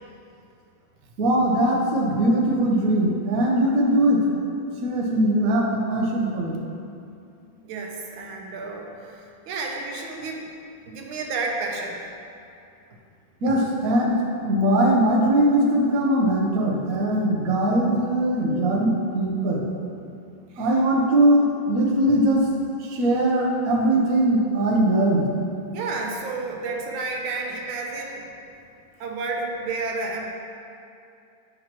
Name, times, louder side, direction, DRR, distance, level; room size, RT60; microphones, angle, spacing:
voice 1, 1.2-4.2 4.8-6.5 13.4-14.2 14.4-19.6 20.6-22.4 22.9-25.2, right 1 dB, 55° right, -1 dB, 1.1 m, -21 dB
voice 2, 7.6-10.5 10.9-12.0 20.5-20.8 25.7-28.3 29.0-30.3, right 3 dB, 80° right, 1 dB, 1.5 m, -31 dB
9.6 x 5.8 x 3.0 m, 2.6 s
omnidirectional pair, 2.2 m